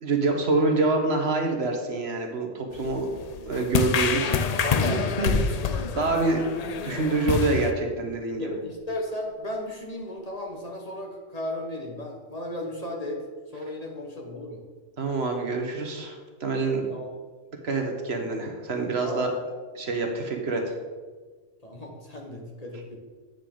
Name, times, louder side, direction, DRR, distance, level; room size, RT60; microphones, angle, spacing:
voice 1, 0.0-3.1 3.4-6.4 6.8-8.5 15.0-16.8 17.6-19.3 19.7-20.8, right 3 dB, 60° right, 3 dB, 1.3 m, -26 dB
sound 1, 2.7-7.7, left 6 dB, 65° left, 0.4 m, -28 dB
voice 2, 4.6-5.0 8.4-13.2 13.5-14.6 16.8-17.1 19.0-19.5 21.6-23.0, left 1 dB, 35° left, 0 dB, 1.2 m, -35 dB
sound 2, 5.3-8.9 9.5-9.6, left 3 dB, 90° left, 1.5 m, -32 dB
9.0 x 6.6 x 3.8 m, 1.4 s
omnidirectional pair, 1.2 m